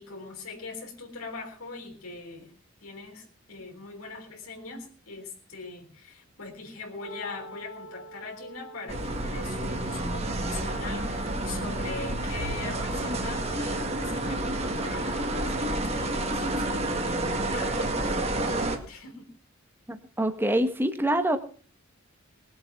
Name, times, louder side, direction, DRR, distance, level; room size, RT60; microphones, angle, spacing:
voice 1, 0.0-2.5 2.8-19.3, left 3 dB, 80° left, 2 dB, 3.7 m, -42 dB
Wind instrument woodwind instrument, 6.9-16.2, left 1 dB, 50° left, 2.3 m, -45 dB
sound 1, 8.9-18.8, right 1 dB, 30° right, 1.9 m, -29 dB
voice 2, 19.9-21.4, right 1 dB, 10° right, 8 dB, 1.3 m, -25 dB
20.5 x 7.9 x 5.9 m, 0.43 s
head